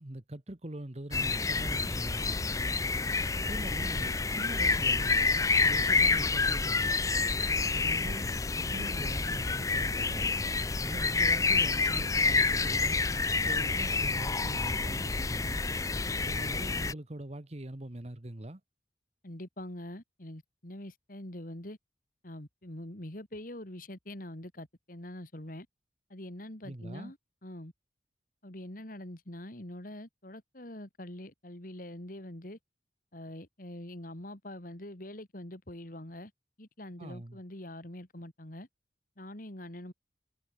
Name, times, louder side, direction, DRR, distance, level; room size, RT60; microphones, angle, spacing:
voice 1, 0.0-2.5 3.4-5.2 5.6-6.9 7.7-10.3 10.8-13.0 13.4-15.6 16.2-18.6 26.6-27.1 37.0-37.4, right 1 dB, 35° right, 1.3 m, -42 dB
sound 1, 1.1-16.9, left 4 dB, 20° left, 0.5 m, -28 dB
voice 2, 19.2-21.8 22.2-25.7 26.1-27.2 27.4-27.7 28.4-32.6 33.1-36.3 36.6-38.7 39.2-39.9, left 1 dB, 50° left, 2.9 m, -44 dB
head